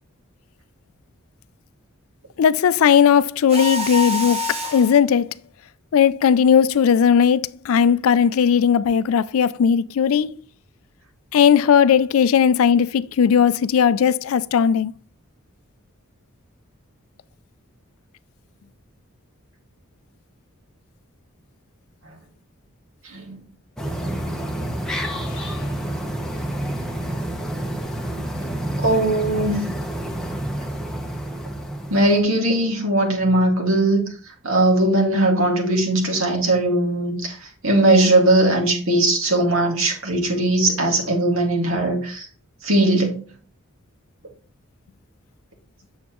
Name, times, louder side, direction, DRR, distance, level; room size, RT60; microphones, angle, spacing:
voice 1, 2.4-5.3 5.9-10.3 11.3-14.9 25.3-25.4, left 7 dB, 65° left, 0.3 m, -17 dB
Mechanisms, 3.5-5.0, left 2 dB, 30° right, 1.1 m, -26 dB
sound 1, 23.8-32.2, right 1 dB, 5° left, 0.9 m, -28 dB
voice 2, 28.8-29.6 31.9-34.0 34.4-37.4 37.6-42.3 42.6-43.2, right 1 dB, 65° right, 2.1 m, -19 dB
7.2 x 7.0 x 3.0 m
head